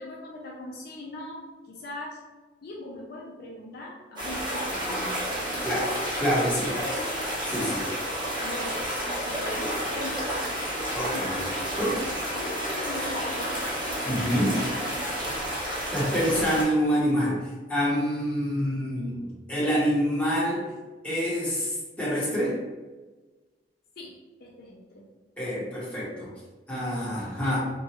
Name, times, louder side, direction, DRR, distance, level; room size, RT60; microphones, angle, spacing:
voice 1, 0.0-2.2 2.6-5.2 6.7-7.1 8.4-8.8 9.3-10.4 11.1-11.6 12.3-13.6 14.2-14.8 24.0-24.1 24.4-25.1, left 1 dB, 60° left, -2 dB, 0.5 m, -40 dB
sound 1, 4.2-16.6, equal, 25° right, 0.9 m, -30 dB
voice 2, 5.6-6.7 7.5-7.8 10.9-11.3 11.8-12.0 14.0-14.5 15.9-17.4 17.7-20.6 21.0-22.6 25.4-26.3 26.7-27.6, equal, 10° left, -8 dB, 1.0 m, -26 dB
3.0 x 2.4 x 2.8 m, 1.2 s
head